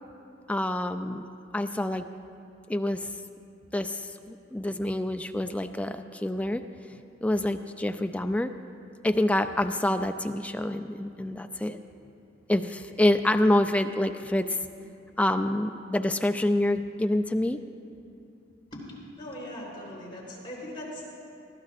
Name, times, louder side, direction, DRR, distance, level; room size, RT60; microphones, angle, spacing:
voice 1, 0.5-1.3 1.5-2.0 2.7-3.1 3.7-6.6 7.2-8.5 9.0-11.8 12.5-14.6 15.2-17.6, left 1 dB, 5° left, 8 dB, 0.3 m, -27 dB
voice 2, 19.2-21.3, left 1 dB, 25° left, -6 dB, 3.7 m, -40 dB
21.0 x 14.5 x 2.5 m, 2.6 s
head